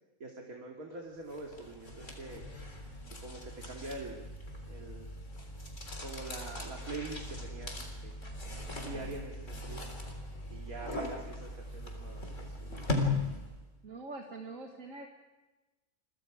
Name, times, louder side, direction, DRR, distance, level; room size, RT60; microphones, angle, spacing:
voice 1, 0.2-2.4 3.1-4.2 4.7-5.1 6.0-9.9 10.5-12.8, right 2 dB, 90° right, 0 dB, 2.9 m, -45 dB
sound 1, 1.3-13.7, left 2 dB, 60° left, 4.1 m, -39 dB
voice 2, 13.8-15.1, right 3 dB, 65° right, 2 dB, 2.1 m, -44 dB
29.5 x 24.5 x 5.0 m, 1.1 s
omnidirectional pair, 1.5 m